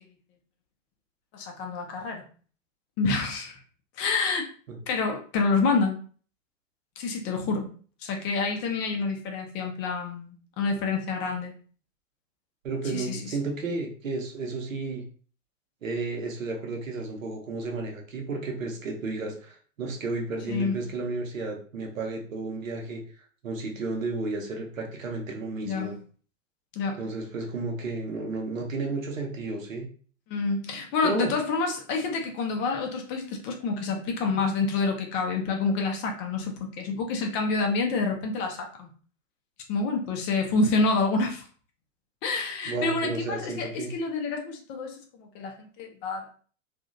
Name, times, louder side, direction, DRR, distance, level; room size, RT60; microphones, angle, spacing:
voice 1, 1.3-2.2 3.0-3.6 4.0-4.5 4.9-6.0 7.0-7.7 8.0-11.5 12.8-13.4 20.5-20.8 25.6-25.9 26.7-27.0 30.3-38.9 39.7-41.4 42.2-46.3, left 4 dB, 30° left, 3 dB, 0.5 m, -28 dB
voice 2, 12.6-15.0 15.8-23.0 23.4-25.9 27.0-29.9 31.0-31.3 42.7-43.9, right 3 dB, 75° right, 2 dB, 0.9 m, -32 dB
2.8 x 2.4 x 2.4 m, 0.41 s
figure-of-eight pair, 100°, 39 cm